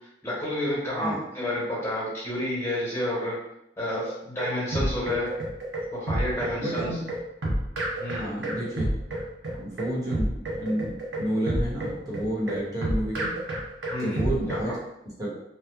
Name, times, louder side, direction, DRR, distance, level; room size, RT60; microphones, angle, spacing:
voice 1, 0.2-3.3 3.8-5.3 5.9-6.9 7.9-8.3 13.9-14.2 14.5-14.7, left 1 dB, 15° left, -7 dB, 1.3 m, -30 dB
sound 1, 4.0-14.7, right 1 dB, 90° right, 0.7 m, -29 dB
voice 2, 6.6-7.0 8.2-8.9 9.5-13.4 14.0-14.8 15.2-15.3, right 1 dB, 20° right, -7 dB, 1.1 m, -30 dB
3.0 x 2.2 x 3.4 m, 0.81 s
head